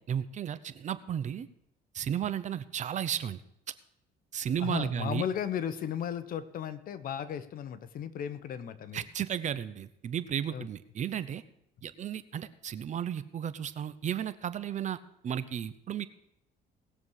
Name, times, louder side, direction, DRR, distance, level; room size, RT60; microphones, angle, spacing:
voice 1, 0.0-1.5 1.9-3.4 4.3-5.2 8.9-11.4 11.8-15.0 15.2-16.1, right 9 dB, 45° right, 14 dB, 0.8 m, -34 dB
voice 2, 4.6-9.0 10.5-10.7, left 9 dB, 55° left, 13 dB, 1.0 m, -35 dB
19.0 x 7.2 x 4.8 m, 0.76 s
cardioid pair, 110°, 17 cm